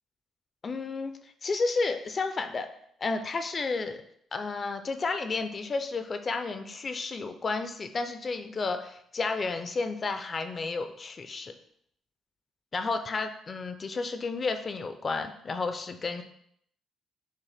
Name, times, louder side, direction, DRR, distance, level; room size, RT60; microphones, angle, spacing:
voice 1, 0.6-2.7 3.0-4.0 4.3-11.5 12.7-16.2, left 3 dB, 40° left, 7 dB, 0.5 m, -32 dB
6.2 x 2.1 x 3.4 m, 0.69 s
cardioid pair, 90°, 0 cm